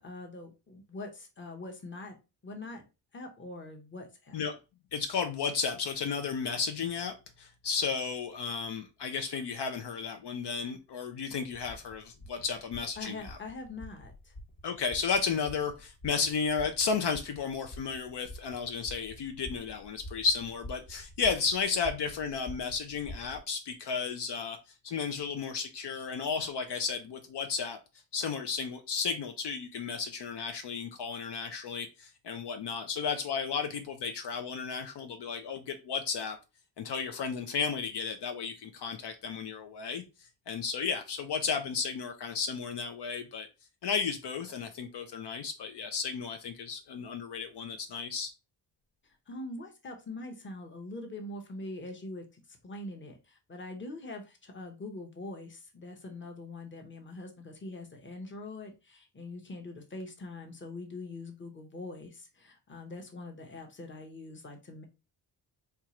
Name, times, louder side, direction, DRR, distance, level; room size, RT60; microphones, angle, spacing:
voice 1, 0.0-2.2 2.4-2.8 3.1-4.4 13.0-14.3 49.3-64.9, left 2 dB, 25° left, 0.8 m, -43 dB
voice 2, 4.9-13.4 14.6-24.6 24.8-27.8 28.1-36.4 36.8-40.0 40.5-43.5 43.8-48.3, left 5 dB, 65° left, 0.6 m, -33 dB
sound 1, 11.5-23.4, left 1 dB, 90° left, 1.8 m, -48 dB
4.5 x 2.4 x 2.9 m
wide cardioid pair, 120°, 43 cm